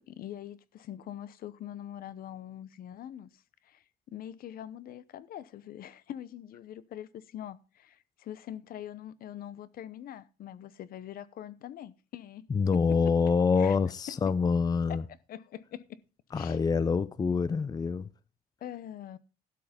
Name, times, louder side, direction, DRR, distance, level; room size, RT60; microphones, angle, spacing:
voice 1, 0.1-3.3 3.6-12.8 13.6-13.8 14.1-14.2 14.9-15.0 15.3-16.0 16.3-16.6 18.6-19.2, left 11 dB, 60° left, 0.8 m, -43 dB
voice 2, 12.5-15.0 16.3-18.1, left 5 dB, 20° left, 0.5 m, -26 dB
12.0 x 8.1 x 5.1 m
cardioid pair, 110°, 17 cm